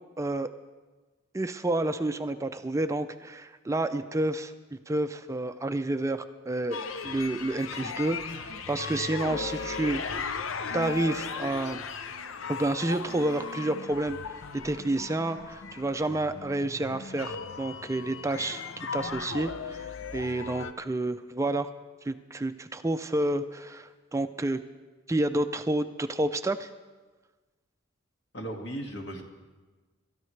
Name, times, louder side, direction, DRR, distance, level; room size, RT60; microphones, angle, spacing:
voice 1, 0.2-0.5 1.3-10.4 10.7-11.8 12.5-21.7 22.0-24.6 25.1-26.7, right 2 dB, 15° right, 9 dB, 0.4 m, -30 dB
sound 1, 6.7-20.7, left 5 dB, 75° left, 0.7 m, -37 dB
voice 2, 28.3-29.2, right 1 dB, 60° left, 1 dB, 2.0 m, -36 dB
27.5 x 13.5 x 3.3 m, 1.3 s
head